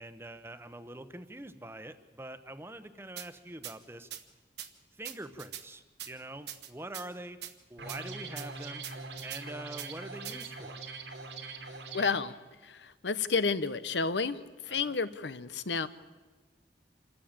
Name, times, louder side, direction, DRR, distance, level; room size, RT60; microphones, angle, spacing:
voice 1, 0.0-4.1 4.9-7.4 7.7-8.8 9.2-10.8 14.7-14.9, right 1 dB, 15° right, 11 dB, 1.0 m, -44 dB
sound 1, 3.2-3.3 3.6-3.7 4.1-4.2 4.6-4.7 5.0-5.6 6.0-6.1 6.5-7.1 7.4-7.5 7.9-8.0 8.4-8.5 8.8-9.4 9.8-9.9 10.2-10.5, right 11 dB, 70° right, 1.4 m, -42 dB
sound 2, 7.8-12.2, right 3 dB, 85° right, 3.0 m, -42 dB
voice 2, 11.9-12.3 12.6-15.9, left 4 dB, 85° left, 14 dB, 1.0 m, -31 dB
27.0 x 14.0 x 8.9 m, 1.3 s
head